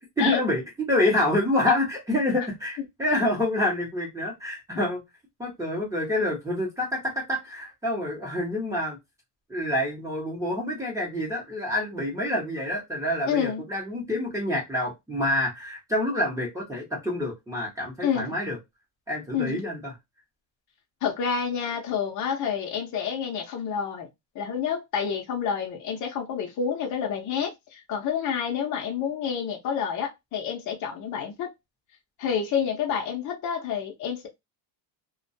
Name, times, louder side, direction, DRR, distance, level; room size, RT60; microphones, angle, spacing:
voice 1, 0.2-5.0 5.4-9.0 9.5-18.6 19.1-19.9, left 1 dB, 5° right, 0.8 m, -27 dB
voice 2, 13.3-13.6 18.0-18.3 19.3-19.6 21.0-24.1 24.3-31.5 32.2-34.3, left 7 dB, 45° left, 0.6 m, -28 dB
2.3 x 2.2 x 2.5 m
cardioid pair, 150°, 43 cm